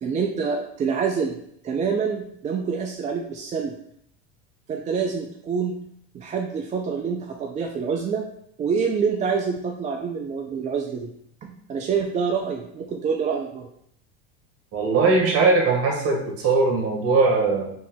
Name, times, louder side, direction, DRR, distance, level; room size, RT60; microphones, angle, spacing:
voice 1, 0.0-1.4 1.6-3.7 4.7-5.8 6.1-8.3 8.6-11.1 11.4-13.7, right 6 dB, 25° right, 2 dB, 0.4 m, -26 dB
voice 2, 14.7-17.7, right 3 dB, 45° right, 0 dB, 1.4 m, -20 dB
4.1 x 2.9 x 3.5 m, 0.69 s
hypercardioid pair, 95°, 33 cm